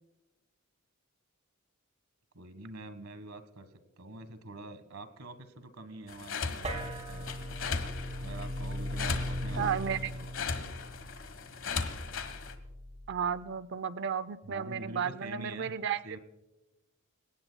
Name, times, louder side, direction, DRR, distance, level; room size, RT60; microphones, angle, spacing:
voice 1, 2.3-3.7 4.0-7.5 8.2-10.7 14.4-15.7 16.0-16.2, right 2 dB, 75° right, 11 dB, 1.6 m, -46 dB
sound 1, 6.1-12.5, left 5 dB, 60° left, 1.4 m, -38 dB
sound 2, 6.6-13.4, equal, 30° right, 3.2 m, -39 dB
sound 3, 9.4-10.7, left 1 dB, 20° left, 1.8 m, -47 dB
voice 2, 9.6-10.1 13.1-16.0, right 7 dB, 50° right, 14 dB, 0.5 m, -33 dB
27.5 x 18.0 x 2.3 m, 1.0 s
head